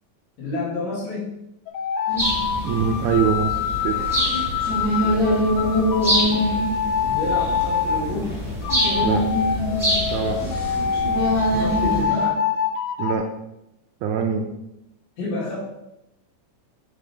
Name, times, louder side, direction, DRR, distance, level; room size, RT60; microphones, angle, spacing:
voice 1, 0.4-1.3 7.1-8.4 11.5-12.4 15.2-15.6, left 2 dB, 60° left, -4 dB, 3.4 m, -29 dB
sound 1, 1.7-8.1 8.6-13.2, left 7 dB, 90° left, 2.5 m, -25 dB
sound 2, 2.1-12.3, equal, 35° left, 2.9 m, -26 dB
sound 3, 2.2-12.0, equal, 5° right, 2.5 m, -28 dB
voice 2, 2.6-4.0 9.0-9.3 10.1-10.4 13.0-13.2 14.0-14.5, right 7 dB, 75° right, 4 dB, 2.0 m, -23 dB
7.6 x 5.3 x 4.9 m, 0.87 s
omnidirectional pair, 3.8 m